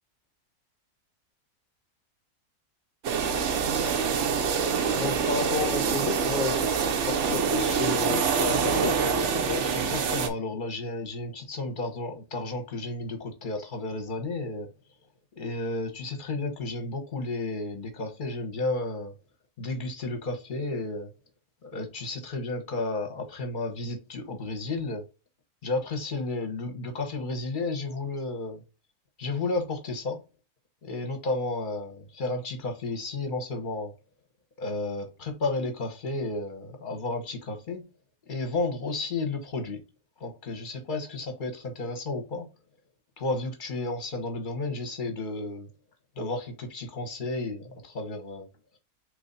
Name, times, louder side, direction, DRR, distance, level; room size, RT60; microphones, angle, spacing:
sound 1, 3.0-10.3, right 6 dB, 60° right, 0.9 m, -26 dB
voice 1, 4.9-6.7 7.1-9.0 9.3-9.7, left 5 dB, 65° left, 0.4 m, -32 dB
voice 2, 9.7-14.7 15.3-19.1 19.6-21.1 21.6-25.0 25.6-28.6 29.2-30.2 30.8-33.9 34.6-37.8 38.3-39.8 40.2-42.5 43.2-45.7 46.2-48.5, left 2 dB, 35° left, 1.0 m, -32 dB
3.9 x 3.2 x 4.0 m
omnidirectional pair, 1.6 m